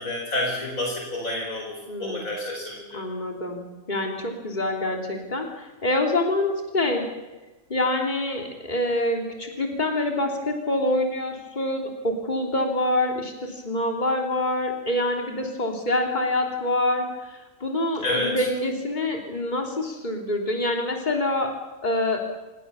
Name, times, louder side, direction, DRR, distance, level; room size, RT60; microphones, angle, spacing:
voice 1, 0.0-3.0 18.0-18.4, left 1 dB, 75° left, 0 dB, 5.4 m, -29 dB
voice 2, 1.9-2.2 2.9-7.1 7.7-21.5 21.8-22.2, left 1 dB, 30° left, 2 dB, 3.4 m, -26 dB
27.0 x 22.0 x 7.1 m, 1.1 s
omnidirectional pair, 1.4 m